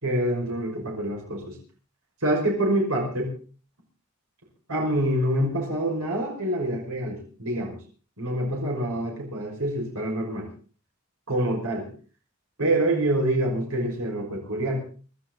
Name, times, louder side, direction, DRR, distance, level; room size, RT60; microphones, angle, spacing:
voice 1, 0.0-1.6 2.2-3.3 4.7-7.8 8.2-10.5 11.3-11.9 12.6-14.8, right 1 dB, 85° right, -1 dB, 5.7 m, -26 dB
24.5 x 13.0 x 4.0 m, 0.39 s
head